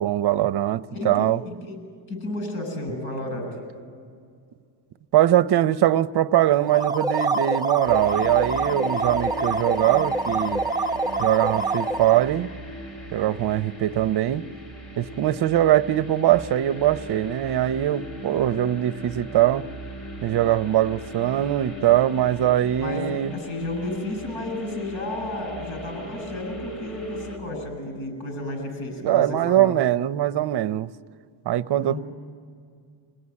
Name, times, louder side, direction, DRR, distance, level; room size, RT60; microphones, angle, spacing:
voice 1, 0.0-1.4 5.1-10.6 11.2-12.5 13.1-14.4 15.0-19.7 20.2-23.4 29.0-30.9 31.5-32.0, right 13 dB, 50° right, 0.7 m, -22 dB
voice 2, 0.9-1.8 2.1-3.7 22.8-23.1 23.3-29.8 31.8-32.0, left 2 dB, 70° left, 8.0 m, -32 dB
sound 1, 6.6-12.3, right 3 dB, 10° right, 0.8 m, -26 dB
sound 2, 7.8-27.4, equal, 40° left, 5.0 m, -39 dB
26.0 x 17.5 x 9.8 m
cardioid pair, 120°, 50 cm